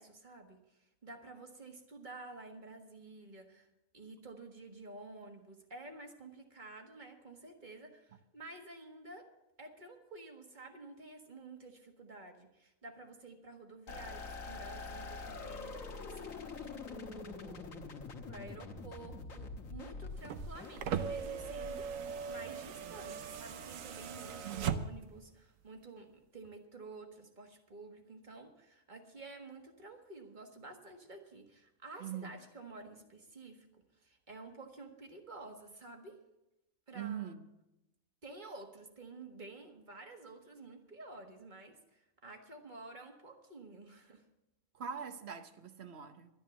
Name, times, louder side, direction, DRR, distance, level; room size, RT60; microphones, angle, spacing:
voice 1, 0.0-3.7 3.9-9.3 9.6-17.8 18.3-36.2 36.9-37.3 38.2-44.2, right 3 dB, 35° right, 1.7 m, -51 dB
sound 1, 13.9-22.3, left 4 dB, 80° left, 1.7 m, -45 dB
sound 2, 20.1-25.2 26.4-26.5, right 7 dB, 75° right, 1.1 m, -39 dB
voice 2, 24.4-24.9 32.0-32.3 36.9-37.4 44.7-46.3, right 8 dB, 55° right, 1.1 m, -42 dB
12.0 x 10.5 x 7.0 m
omnidirectional pair, 1.4 m